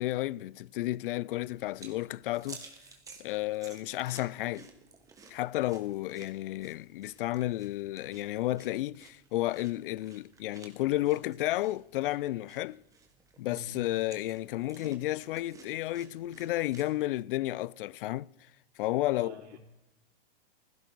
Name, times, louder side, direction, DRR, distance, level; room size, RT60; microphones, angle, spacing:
voice 1, 0.0-2.7 3.2-4.7 5.3-12.8 13.4-18.5 18.8-19.4, left 16 dB, 55° left, 0.4 m, -32 dB
sound 1, 1.3-16.9, right 4 dB, 10° right, 1.4 m, -54 dB
voice 2, 13.5-13.8 19.1-19.6, right 2 dB, 80° right, 4.0 m, -47 dB
17.0 x 15.5 x 4.0 m
supercardioid pair, 155°, 32 cm